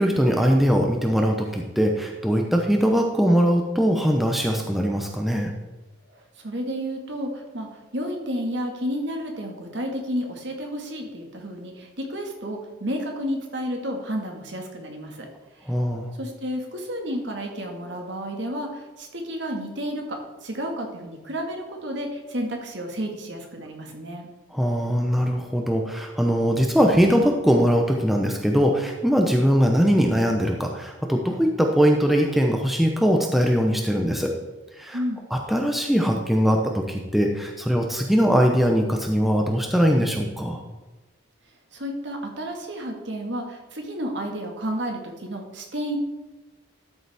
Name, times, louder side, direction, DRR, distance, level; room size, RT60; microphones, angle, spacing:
voice 1, 0.0-5.5 15.7-16.1 24.5-34.3 34.7-35.0 35.3-40.6, equal, ahead, 1 dB, 0.7 m, -21 dB
voice 2, 6.1-15.3 15.6-15.7 16.2-24.3 34.9-35.2 41.7-46.0, equal, 60° right, 2 dB, 1.7 m, -31 dB
12.5 x 6.9 x 3.5 m, 1.2 s
head